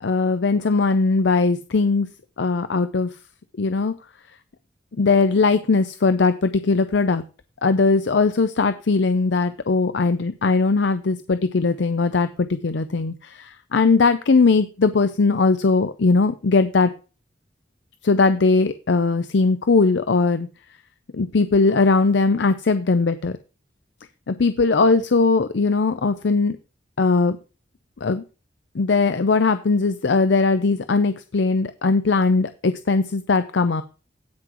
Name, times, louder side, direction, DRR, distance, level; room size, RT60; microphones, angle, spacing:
voice 1, 0.0-2.1 2.4-3.1 3.6-4.0 5.0-7.2 7.6-16.9 18.0-20.5 21.1-23.3 24.3-26.6 27.0-27.4 28.0-28.2 28.7-33.8, left 4 dB, 65° left, 11 dB, 0.6 m, -19 dB
17.0 x 6.1 x 3.0 m, 0.34 s
head